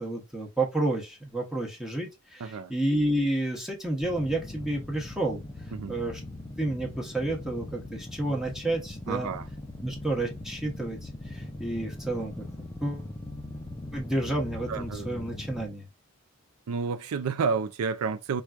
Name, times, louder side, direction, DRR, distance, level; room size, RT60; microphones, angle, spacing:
voice 1, 0.0-5.4 5.9-6.2 6.6-9.3 9.8-12.4 12.8-13.1 13.9-15.9, right 1 dB, ahead, 0.8 m, -30 dB
voice 2, 2.4-2.7 5.7-6.0 9.1-9.5 14.7-15.1 16.7-18.4, right 5 dB, 85° right, 0.4 m, -30 dB
sound 1, 4.0-15.7, left 1 dB, 20° left, 0.4 m, -40 dB
4.5 x 2.3 x 2.4 m
head